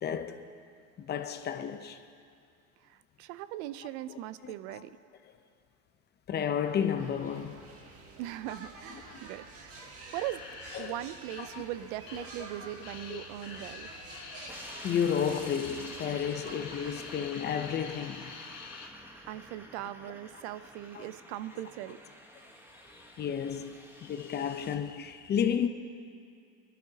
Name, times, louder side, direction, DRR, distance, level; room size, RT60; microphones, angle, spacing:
voice 1, 0.0-0.5 1.0-2.0 4.1-4.8 6.3-7.6 8.9-9.2 10.7-11.0 11.5-11.6 12.1-12.2 13.1-13.2 14.8-18.3 20.9-21.1 22.9-25.7, left 8 dB, 30° left, 0.6 m, -32 dB
voice 2, 2.8-5.0 8.2-9.9 10.1-10.4 10.8-14.0 19.3-22.0, right 14 dB, 65° right, 0.5 m, -40 dB
sound 1, 6.5-18.1, right 3 dB, 40° right, 1.6 m, -50 dB
sound 2, 10.1-12.5 12.8-18.9, left 5 dB, 45° left, 1.8 m, -46 dB
sound 3, 14.5-24.7, equal, 5° right, 1.1 m, -50 dB
21.5 x 12.0 x 2.8 m
supercardioid pair, 115°, 36 cm